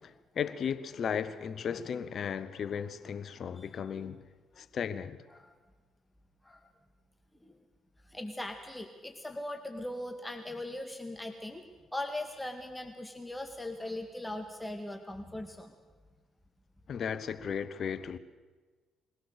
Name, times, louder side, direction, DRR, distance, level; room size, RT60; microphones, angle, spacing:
voice 1, 0.0-4.2 4.6-5.2 16.9-18.2, left 7 dB, 55° left, 1.1 m, -35 dB
voice 2, 8.1-15.7, left 1 dB, 10° left, 2.0 m, -40 dB
22.5 x 17.0 x 6.9 m
hypercardioid pair, 55°, 0 cm